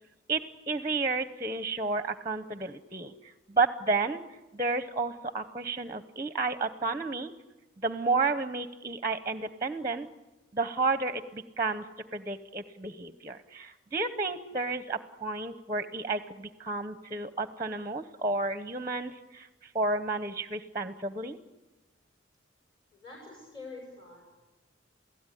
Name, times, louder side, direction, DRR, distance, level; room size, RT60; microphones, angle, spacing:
voice 1, 0.3-4.2 4.5-7.3 7.8-10.1 10.5-21.4, right 3 dB, 20° right, 10 dB, 0.9 m, -31 dB
voice 2, 22.9-24.3, left 3 dB, 25° left, -1 dB, 6.6 m, -46 dB
28.5 x 17.0 x 10.0 m, 1.1 s
head